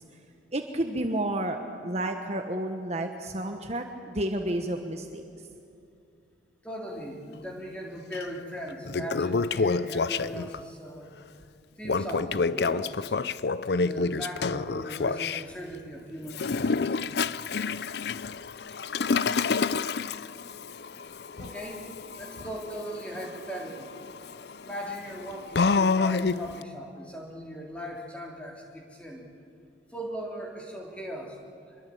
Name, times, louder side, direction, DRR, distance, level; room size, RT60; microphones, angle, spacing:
voice 1, 0.5-5.2, right 1 dB, 35° right, 5 dB, 1.2 m, -31 dB
voice 2, 6.6-11.1 11.8-13.2 13.8-17.3 21.4-21.9 22.2-23.9 24.6-29.2 29.9-31.4, equal, 5° left, -1 dB, 3.5 m, -39 dB
Toilet flush, 8.1-8.2 8.7-10.6 11.8-15.4 16.3-26.6, left 4 dB, 60° left, 0.5 m, -28 dB
25.5 x 22.5 x 8.6 m, 2.6 s
head